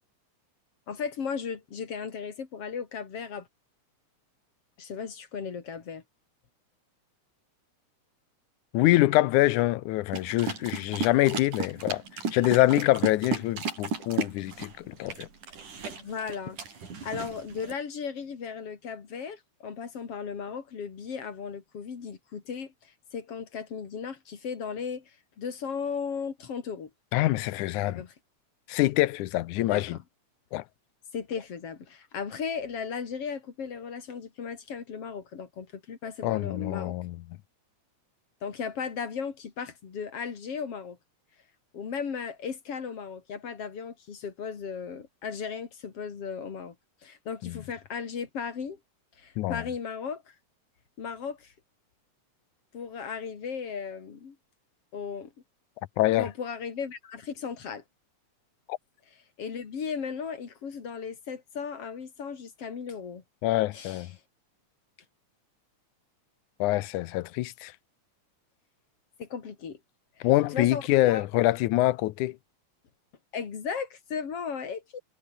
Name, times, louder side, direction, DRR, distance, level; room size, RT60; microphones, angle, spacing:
voice 1, 0.9-3.5 4.8-6.0 15.9-16.6 17.0-26.9 27.9-28.1 29.6-30.0 31.1-37.0 38.4-41.0 41.7-46.8 47.0-48.8 49.2-50.4 51.0-51.5 52.7-54.4 54.9-55.3 56.1-57.8 59.4-63.2 63.7-64.1 69.2-69.8 70.2-71.3 73.3-75.0, left 6 dB, 50° left, 3.5 m, -36 dB
voice 2, 8.7-15.3 27.1-28.0 28.7-30.0 30.5-30.6 36.2-37.2 47.4-47.6 49.4-49.6 56.0-56.3 58.7-58.8 63.4-64.1 66.6-67.7 70.2-72.4, left 17 dB, 80° left, 2.2 m, -25 dB
sound 1, 10.1-17.7, right 5 dB, 85° right, 6.1 m, -34 dB
omnidirectional pair, 3.5 m